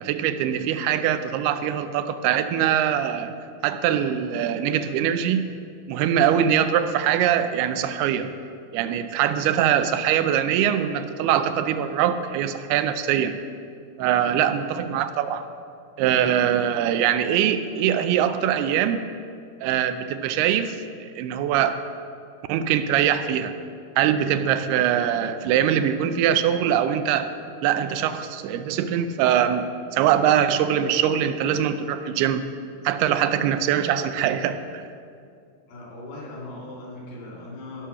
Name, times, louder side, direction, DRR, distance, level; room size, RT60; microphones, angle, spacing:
voice 1, 0.0-3.3 3.6-5.5 5.9-8.3 8.7-13.4 14.0-15.5 16.0-19.0 19.6-21.8 22.5-23.6 24.0-27.3 27.6-32.5 32.8-34.8, right 9 dB, 85° right, 10 dB, 2.5 m, -22 dB
voice 2, 14.2-14.7 35.7-37.9, left 2 dB, 80° left, -4 dB, 5.0 m, -39 dB
15.5 x 6.3 x 5.7 m, 2.3 s
omnidirectional pair, 4.5 m